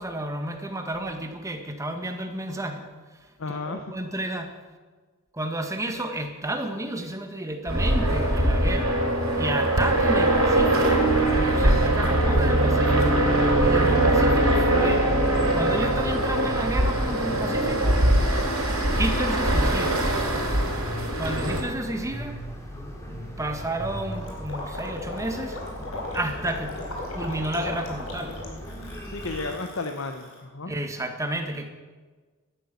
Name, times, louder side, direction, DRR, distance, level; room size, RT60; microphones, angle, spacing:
voice 1, 0.0-2.9 3.5-4.5 5.3-9.0 9.3-10.9 11.5-13.2 13.6-15.1 15.5-18.0 18.9-20.0 21.2-22.4 23.4-25.6 26.1-26.7 27.1-28.3 30.6-31.7, right 1 dB, 15° right, 5 dB, 1.6 m, -31 dB
voice 2, 3.4-3.9 29.0-30.7, left 3 dB, 65° left, 6 dB, 1.0 m, -34 dB
sound 1, 7.7-21.6, right 1 dB, 80° right, 4.8 m, -22 dB
sound 2, 10.9-29.5, equal, 15° left, 2.6 m, -38 dB
Gurgling, 23.5-30.4, left 2 dB, 90° left, 4.2 m, -37 dB
12.5 x 10.5 x 8.4 m, 1.4 s
head